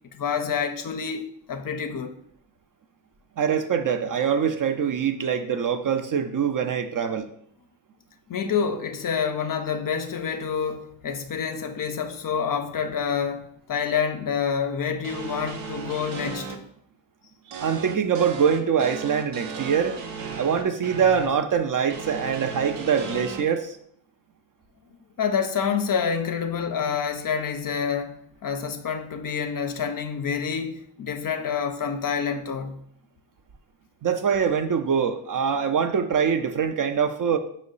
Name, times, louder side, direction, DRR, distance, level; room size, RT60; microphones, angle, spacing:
voice 1, 0.1-2.1 8.3-16.6 25.2-32.8, left 6 dB, 45° left, 0.5 m, -28 dB
voice 2, 3.4-7.3 17.6-20.0 20.4-23.8 34.0-37.4, right 7 dB, 45° right, 0.4 m, -24 dB
sound 1, 15.0-16.5 17.5-21.3 21.9-23.4, right 5 dB, 80° right, 0.6 m, -35 dB
5.2 x 2.0 x 3.8 m
supercardioid pair, 45°, 49 cm